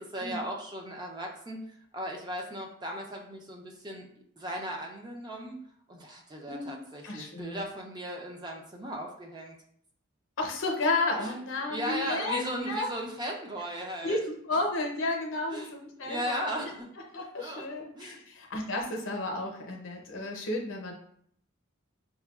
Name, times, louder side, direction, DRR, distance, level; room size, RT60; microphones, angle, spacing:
voice 1, 0.0-4.1 4.4-5.6 5.9-9.5 11.2-11.3 11.7-14.2 15.5-15.7 16.0-16.9 17.4-17.6 17.9-18.2, equal, 20° right, 0 dB, 0.4 m, -37 dB
voice 2, 6.5-7.7 10.4-12.9 14.0-16.7 17.1-20.9, left 2 dB, 65° left, 2 dB, 0.7 m, -32 dB
5.4 x 2.2 x 2.3 m, 0.66 s
head